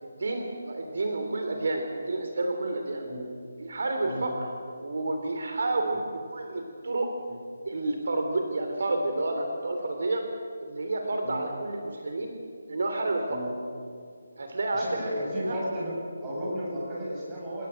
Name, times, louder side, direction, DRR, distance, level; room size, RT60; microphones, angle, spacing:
voice 1, 0.0-3.0 3.6-4.3 4.8-7.1 7.7-10.2 10.6-12.3 12.7-13.4 14.4-15.0 15.4-15.6, right 2 dB, 60° right, 4 dB, 3.3 m, -30 dB
voice 2, 14.7-15.9 16.2-17.7, equal, 15° right, -6 dB, 7.8 m, -33 dB
29.0 x 17.5 x 7.9 m, 2.2 s
figure-of-eight pair, 170°, 0 cm